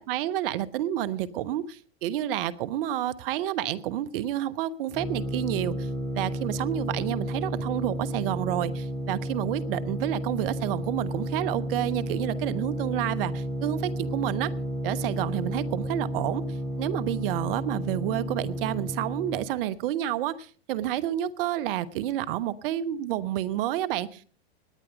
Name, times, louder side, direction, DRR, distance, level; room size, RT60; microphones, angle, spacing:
voice 1, 0.0-5.9 6.1-14.5 14.8-16.4 16.8-24.2, right 12 dB, 60° right, 1.1 m, -29 dB
sound 1, 4.9-19.5, equal, 20° left, 7.1 m, -32 dB
19.5 x 9.2 x 5.2 m
hypercardioid pair, 105°, 32 cm